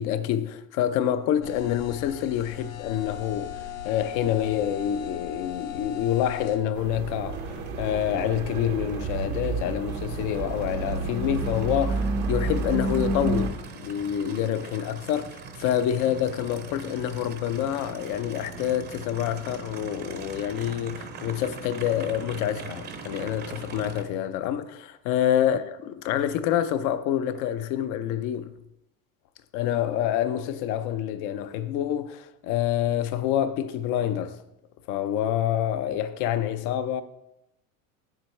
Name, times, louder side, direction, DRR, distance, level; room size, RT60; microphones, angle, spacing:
voice 1, 0.0-28.5 29.5-34.4 34.9-37.0, left 10 dB, 50° left, 0.6 m, -27 dB
sound 1, 1.4-6.6, left 10 dB, 85° left, 1.5 m, -38 dB
sound 2, 6.7-13.5, right 3 dB, 85° right, 1.2 m, -30 dB
Aircraft, 7.3-24.0, right 5 dB, 25° right, 0.7 m, -42 dB
9.1 x 7.4 x 3.2 m
supercardioid pair, 130°, 40 cm